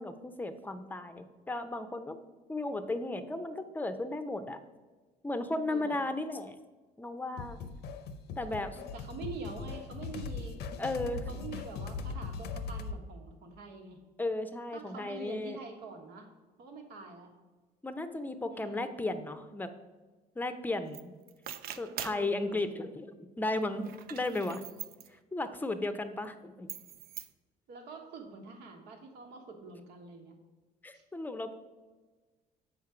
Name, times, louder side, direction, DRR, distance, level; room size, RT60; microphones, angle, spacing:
voice 1, 0.0-2.2 2.5-4.6 5.2-6.6 7.0-7.6 8.4-8.8 10.8-11.3 14.2-15.6 17.8-19.7 20.4-21.1 21.8-24.6 25.3-26.7 30.8-31.5, left 2 dB, 10° left, 9 dB, 0.6 m, -35 dB
voice 2, 5.7-6.0 8.8-10.6 11.3-14.0 14.7-16.3 16.6-17.3 18.5-18.9 22.1-22.6 27.7-30.4 30.9-31.0, right 4 dB, 80° right, 3 dB, 1.4 m, -46 dB
sound 1, 7.4-13.0, left 4 dB, 75° left, 0.7 m, -40 dB
sound 2, 20.9-21.0 21.3-22.3 23.8-25.1 26.7-27.3, right 10 dB, 65° right, 0.5 m, -43 dB
7.2 x 5.1 x 4.9 m, 1.3 s
cardioid pair, 110°, 17 cm